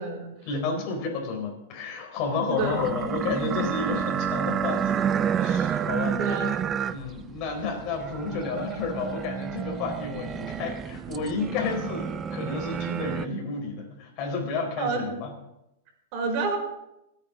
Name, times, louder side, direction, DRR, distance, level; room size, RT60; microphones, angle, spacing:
voice 1, 0.5-5.1 5.3-6.3 6.9-15.3, left 4 dB, 40° left, 2 dB, 4.2 m, -31 dB
voice 2, 2.5-2.8 5.7-6.5 14.8-15.1 16.1-16.6, right 4 dB, 45° right, -1 dB, 4.8 m, -29 dB
sound 1, 2.6-13.3, right 8 dB, 20° right, 0.4 m, -30 dB
27.0 x 9.0 x 3.9 m, 0.88 s
supercardioid pair, 150°, 0 cm